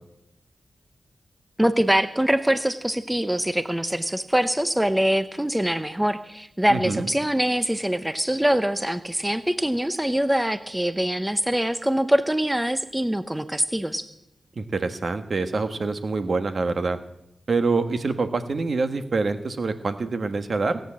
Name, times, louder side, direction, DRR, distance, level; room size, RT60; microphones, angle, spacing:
voice 1, 1.6-14.1, right 1 dB, 10° right, 12 dB, 0.8 m, -23 dB
voice 2, 6.7-7.1 14.6-17.0 17.5-20.8, right 3 dB, 55° right, 9 dB, 1.4 m, -25 dB
17.0 x 9.3 x 7.5 m, 0.83 s
cardioid pair, 65°, 0 cm